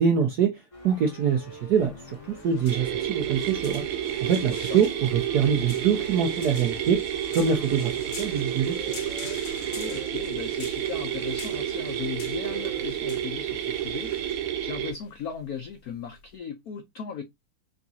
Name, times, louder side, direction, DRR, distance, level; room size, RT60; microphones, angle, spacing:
voice 1, 0.0-3.8 4.2-7.0 7.3-8.8, right 7 dB, 70° right, 1.0 m, -24 dB
sound 1, 0.7-12.8, equal, 25° left, 0.7 m, -46 dB
sound 2, 1.7-16.4, left 5 dB, 50° left, 1.4 m, -46 dB
sound 3, 2.7-14.9, right 10 dB, 85° right, 1.6 m, -30 dB
voice 2, 4.3-4.8 9.8-17.2, left 7 dB, 75° left, 0.8 m, -37 dB
3.9 x 3.5 x 2.7 m
omnidirectional pair, 2.4 m